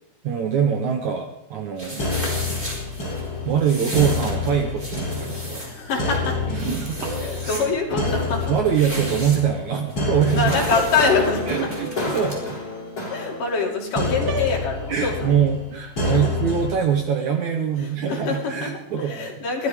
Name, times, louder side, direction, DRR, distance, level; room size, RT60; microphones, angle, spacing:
voice 1, 0.2-2.0 3.5-5.6 6.5-7.0 7.4-7.5 8.5-10.5 11.5-12.4 14.9-19.3, right 8 dB, 65° right, 3 dB, 2.0 m, -23 dB
sound 1, 1.8-12.4, equal, 15° right, 4.9 m, -36 dB
voice 2, 1.9-2.4 5.6-6.4 7.2-8.5 10.3-11.5 13.1-15.4 16.1-16.3 17.8-19.7, left 4 dB, 60° left, -1 dB, 4.2 m, -25 dB
sound 2, 2.0-16.7, left 3 dB, 35° left, 7.1 m, -28 dB
sound 3, 7.0-7.5 10.7-11.2 14.3-14.6, right 2 dB, 40° right, 2.1 m, -30 dB
23.5 x 17.0 x 3.6 m, 0.83 s
omnidirectional pair, 4.4 m